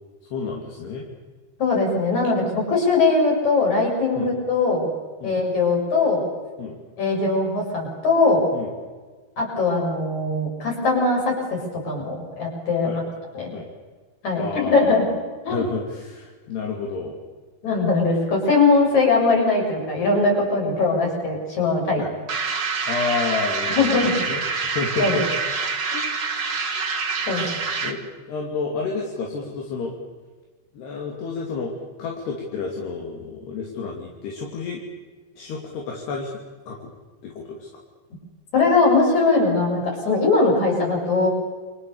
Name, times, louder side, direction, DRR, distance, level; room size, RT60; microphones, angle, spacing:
voice 1, 0.3-1.1 4.2-4.3 5.2-5.3 6.6-6.8 8.5-8.7 12.8-13.0 13.5-13.7 14.4-15.0 15.5-17.2 22.0-22.1 22.9-23.9 24.2-25.3 27.2-30.0 30.7-31.7 32.0-34.8 35.4-36.9 37.2-37.7, left 4 dB, 65° left, -1 dB, 4.6 m, -30 dB
voice 2, 1.6-4.9 5.2-6.2 7.0-8.5 9.4-12.9 13.3-13.5 14.2-15.0 15.4-15.6 17.6-22.0 23.7-24.1 25.0-25.2 27.3-27.4 38.5-41.3, left 3 dB, 40° left, 0 dB, 8.0 m, -20 dB
sound 1, 22.3-28.1, right 4 dB, 50° right, 1.3 m, -26 dB
29.5 x 25.0 x 7.1 m, 1.4 s
omnidirectional pair, 5.1 m